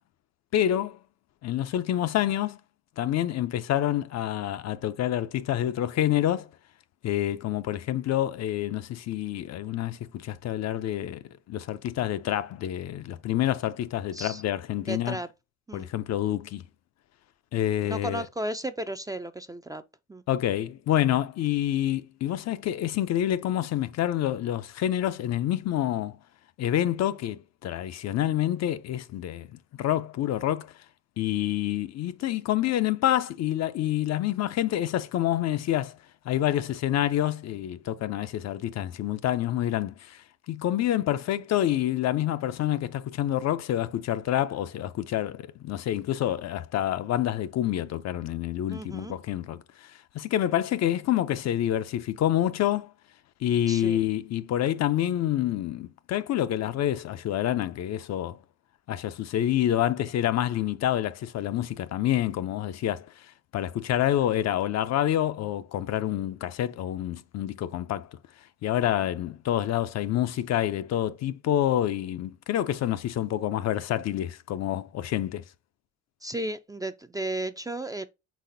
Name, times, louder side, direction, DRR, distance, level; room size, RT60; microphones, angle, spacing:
voice 1, 0.5-1.0 1.4-2.6 3.0-6.5 7.0-11.2 11.5-15.2 15.7-16.6 17.5-18.3 20.3-26.2 26.6-29.5 29.7-30.7 31.2-36.0 36.3-52.9 53.4-58.4 58.9-68.1 68.6-75.4, left 12 dB, 60° left, 0.5 m, -27 dB
voice 2, 14.8-15.3 15.7-15.9 17.8-19.8 20.1-20.2 48.7-49.2 53.7-54.0 76.2-78.1, right 1 dB, 15° right, 0.3 m, -34 dB
4.1 x 4.1 x 2.6 m
cardioid pair, 90°, 30 cm